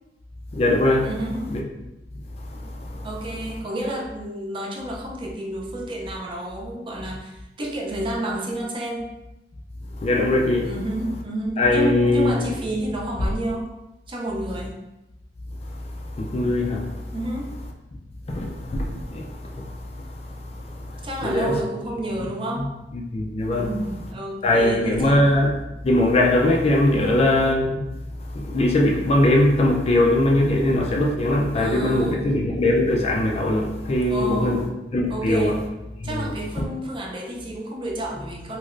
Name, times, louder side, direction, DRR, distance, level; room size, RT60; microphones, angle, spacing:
voice 1, 0.5-1.1 1.5-1.6 2.5-3.1 10.0-10.7 11.6-12.6 16.1-16.9 18.3-19.7 20.8-21.6 22.2-22.3 22.6-23.7 24.4-25.6 25.8-27.8 28.3-34.6 34.9-35.6 36.0-36.6, left 1 dB, 35° left, 0 dB, 0.4 m, -21 dB
voice 2, 1.0-1.6 3.0-9.2 10.6-13.7 14.1-14.8 17.1-17.6 21.0-22.8 23.5-25.2 26.9-27.3 31.5-32.4 34.1-34.7 35.1-35.7 36.0-38.6, right 1 dB, 30° right, -2 dB, 0.5 m, -30 dB
3.1 x 2.9 x 2.5 m, 0.96 s
head